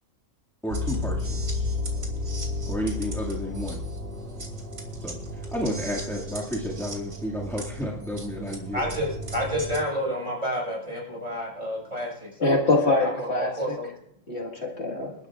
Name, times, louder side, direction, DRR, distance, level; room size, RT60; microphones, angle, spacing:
voice 1, 0.6-1.7 2.6-3.8 5.0-8.8, equal, ahead, -4 dB, 2.0 m, -32 dB
sound 1, 0.7-9.8, left 1 dB, 85° right, 3.3 m, -33 dB
voice 2, 8.7-12.6 13.0-13.9, equal, 30° right, -2 dB, 5.7 m, -30 dB
voice 3, 12.4-13.8 14.3-15.1, left 2 dB, 55° left, 1 dB, 2.1 m, -24 dB
28.5 x 12.0 x 2.4 m, 0.73 s
omnidirectional pair, 1.4 m